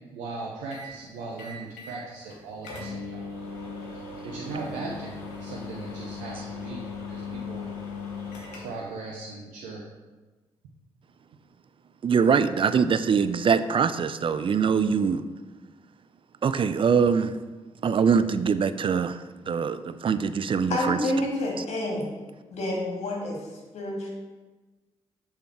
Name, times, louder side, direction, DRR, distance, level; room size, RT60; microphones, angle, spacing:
voice 1, 0.1-3.3 3.9-7.8 8.5-9.8, right 3 dB, 80° right, 0.6 m, -38 dB
sound 1, 0.7-0.9 1.4-2.0 2.3-2.4 2.6-8.9, left 4 dB, 85° left, 0.9 m, -38 dB
voice 2, 12.0-15.3 16.4-17.4 17.8-19.2 19.5-21.0, right 6 dB, 40° right, 0.4 m, -23 dB
voice 3, 20.7-22.1 22.5-24.1, left 1 dB, 60° left, 1.6 m, -29 dB
7.1 x 3.4 x 4.5 m
hypercardioid pair, 40°, 13 cm